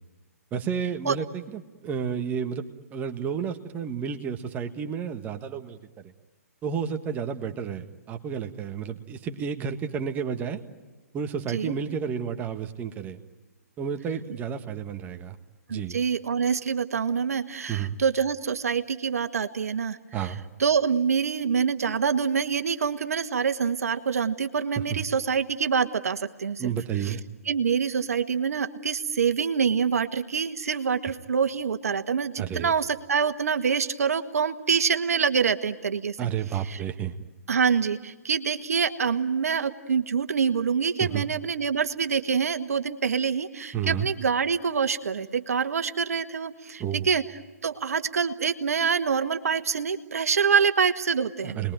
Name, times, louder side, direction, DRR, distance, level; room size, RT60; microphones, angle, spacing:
voice 1, 0.5-5.8 6.6-10.6 11.1-13.2 13.8-15.4 15.7-16.0 17.7-17.9 20.1-20.4 24.8-25.0 26.6-27.2 32.4-32.7 36.2-37.2 41.0-41.3 43.7-44.1 46.8-47.1 51.4-51.7, right 7 dB, 20° right, 6 dB, 1.7 m, -31 dB
voice 2, 15.7-20.0 20.6-26.7 27.1-27.2 27.5-36.2 36.7-36.8 37.5-47.2 47.6-51.6, right 6 dB, 70° right, 9 dB, 1.7 m, -26 dB
29.0 x 21.5 x 9.1 m, 1.2 s
figure-of-eight pair, 135°, 9 cm